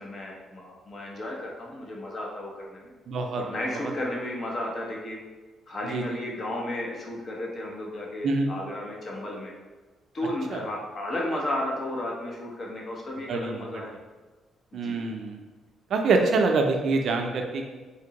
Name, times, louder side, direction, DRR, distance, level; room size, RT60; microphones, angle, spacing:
voice 1, 0.0-2.9 3.3-5.2 5.7-9.5 10.1-13.9 14.8-15.0, left 1 dB, 45° left, -2 dB, 0.8 m, -33 dB
voice 2, 3.1-3.4 5.9-6.2 8.2-8.5 10.5-10.6 13.3-13.8 14.7-15.4 15.9-17.7, right 3 dB, 65° right, 3 dB, 0.4 m, -25 dB
3.4 x 2.9 x 2.9 m, 1.3 s
cardioid pair, 90°, 0 cm